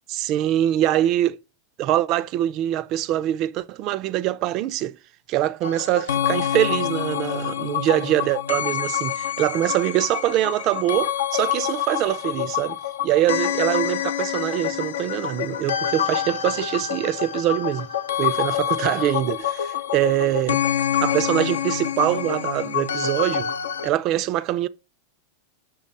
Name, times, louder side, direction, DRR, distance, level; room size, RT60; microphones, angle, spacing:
voice 1, 0.1-1.4 1.8-5.0 5.3-17.9 18.2-20.6 21.0-23.5 23.8-24.7, right 13 dB, 40° right, 0.4 m, -23 dB
sound 1, 5.6-23.9, left 10 dB, 65° left, 0.4 m, -26 dB
6.2 x 3.3 x 5.3 m
figure-of-eight pair, 90°, 0 cm